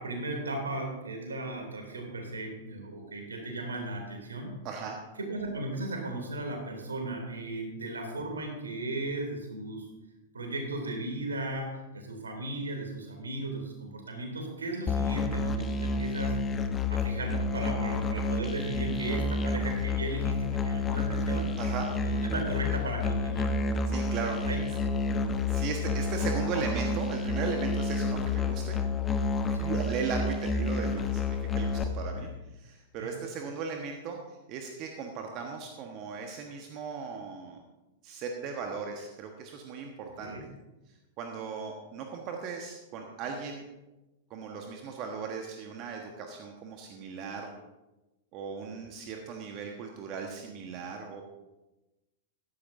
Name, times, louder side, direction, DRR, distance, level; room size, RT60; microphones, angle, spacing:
voice 1, 0.0-4.5 5.2-9.8 10.3-16.4 16.9-21.5 22.0-23.5 24.5-24.6 29.5-29.8 33.0-33.1 40.2-40.4, right 2 dB, 80° right, 2 dB, 2.9 m, -36 dB
voice 2, 4.6-5.0 21.6-21.9 23.9-24.4 25.5-28.8 29.5-32.3 32.6-34.2 34.5-37.6 38.0-40.5 41.2-43.6 44.3-47.5 48.3-51.2, right 5 dB, 40° right, 3 dB, 1.3 m, -37 dB
Musical instrument, 14.9-31.8, left 3 dB, 20° left, 1.0 m, -29 dB
15.0 x 12.0 x 2.7 m, 1.0 s
figure-of-eight pair, 95°, 0 cm